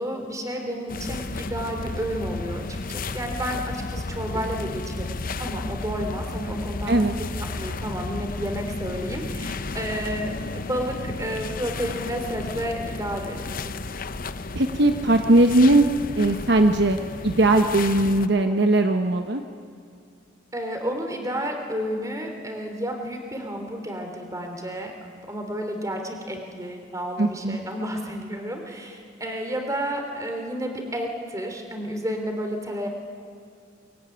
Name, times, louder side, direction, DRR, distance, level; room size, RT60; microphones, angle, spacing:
voice 1, 0.0-2.6 2.9-13.8 20.5-24.9 25.2-32.9, equal, 15° right, 3 dB, 3.4 m, -31 dB
sound 1, 0.9-18.3, left 3 dB, 45° left, 0.8 m, -33 dB
voice 2, 14.5-15.9 16.2-17.0 17.2-19.4 27.2-27.6, right 2 dB, 60° right, 6 dB, 1.1 m, -19 dB
23.0 x 22.0 x 9.9 m, 2.3 s
head